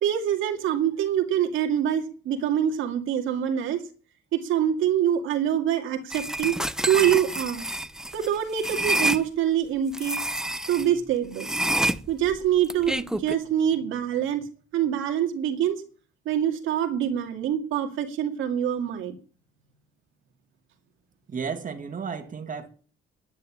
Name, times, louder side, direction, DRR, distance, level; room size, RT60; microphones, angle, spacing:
voice 1, 0.0-3.8 4.3-6.6 6.9-7.6 8.1-10.2 10.7-11.5 12.1-14.5 14.7-15.8 16.3-19.1, right 10 dB, 90° right, 2.2 m, -25 dB
sound 1, 6.1-9.2 9.9-10.9 11.4-13.3, right 1 dB, 5° right, 0.8 m, -28 dB
voice 2, 21.3-22.7, right 6 dB, 40° right, 2.3 m, -33 dB
10.5 x 9.5 x 9.8 m
cardioid pair, 90°, 20 cm